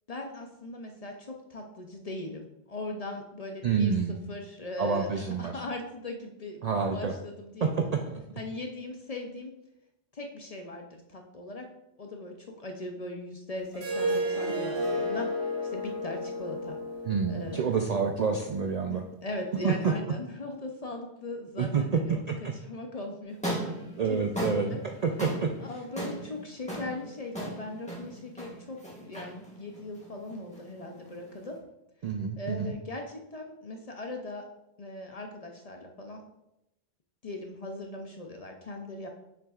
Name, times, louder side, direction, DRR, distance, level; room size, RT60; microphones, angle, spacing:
voice 1, 0.1-3.9 4.3-7.9 8.4-9.5 10.1-11.7 12.0-16.8 17.3-17.9 18.9-22.2 22.6-23.7 24.1-24.8 25.6-31.6 32.4-34.4 34.8-36.3 37.2-39.1, left 2 dB, 45° left, 3 dB, 0.6 m, -39 dB
voice 2, 3.6-4.2 4.8-5.6 6.6-7.1 7.6-8.2 17.0-19.0 19.6-19.9 21.6-22.5 24.0-25.5 32.0-32.7, right 5 dB, 55° right, 3 dB, 0.4 m, -28 dB
Harp, 13.7-18.9, equal, 75° right, 1.4 m, -33 dB
sound 1, 23.3-31.6, right 1 dB, 5° left, 1.3 m, -38 dB
6.6 x 6.1 x 2.4 m, 0.88 s
omnidirectional pair, 1.1 m